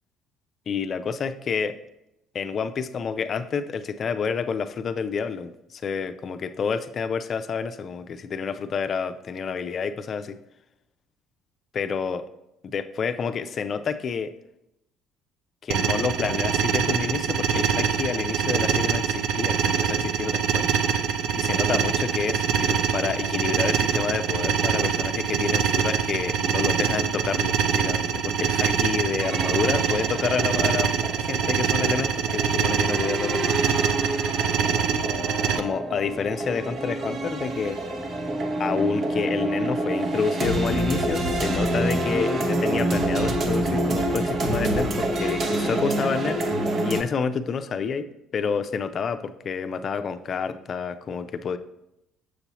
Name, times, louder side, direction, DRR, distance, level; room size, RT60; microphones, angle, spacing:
voice 1, 0.7-1.8 2.3-10.4 11.7-12.2 12.6-14.3 15.6-20.7 21.4-30.9 31.2-33.5 35.6-37.8 38.6-46.4 46.8-51.6, left 6 dB, 45° left, 10 dB, 0.5 m, -29 dB
sound 1, 15.7-35.6, right 7 dB, 70° right, 0.5 m, -24 dB
sound 2, 29.2-47.0, right 1 dB, 50° right, 0.9 m, -28 dB
sound 3, 34.3-41.3, right 1 dB, 10° right, 0.5 m, -33 dB
6.8 x 6.4 x 3.0 m, 0.84 s
hypercardioid pair, 55°, 0 cm